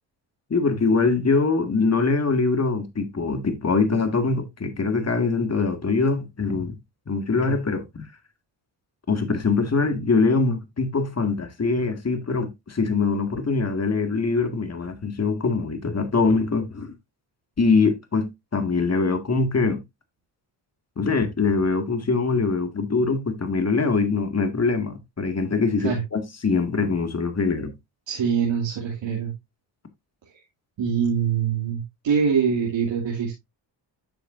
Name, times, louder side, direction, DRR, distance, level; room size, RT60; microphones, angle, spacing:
voice 1, 0.5-6.7 7.1-7.8 9.1-16.9 17.6-19.8 21.0-27.7, left 4 dB, 35° left, 2.0 m, -23 dB
voice 2, 28.1-29.3 30.8-33.3, right 7 dB, 75° right, 2.7 m, -24 dB
9.3 x 6.8 x 2.6 m
cardioid pair, 65°, 46 cm